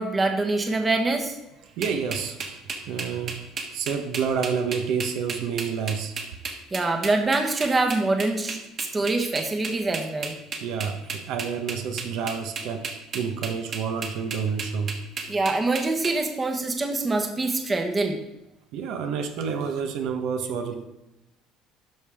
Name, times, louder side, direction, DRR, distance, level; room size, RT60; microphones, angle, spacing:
voice 1, 0.0-1.4 6.7-10.4 15.3-18.2, right 2 dB, 20° right, 4 dB, 1.0 m, -25 dB
voice 2, 1.6-6.1 10.6-15.0 18.7-20.8, right 6 dB, 65° right, 6 dB, 0.9 m, -29 dB
sound 1, 1.8-16.1, right 4 dB, 40° right, 1.3 m, -33 dB
12.0 x 5.4 x 3.5 m, 0.98 s
cardioid pair, 130°, 0 cm